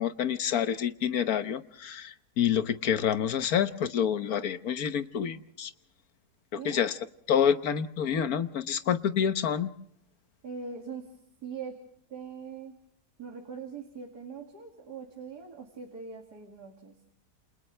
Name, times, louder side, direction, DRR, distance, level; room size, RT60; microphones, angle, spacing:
voice 1, 0.0-5.7 6.5-7.0 7.3-9.7, left 8 dB, 60° left, 11 dB, 1.5 m, -28 dB
voice 2, 10.4-11.1 11.4-11.8 12.1-12.8 13.2-16.9, right 5 dB, 70° right, 2 dB, 3.0 m, -41 dB
28.5 x 28.5 x 3.3 m, 0.66 s
omnidirectional pair, 1.8 m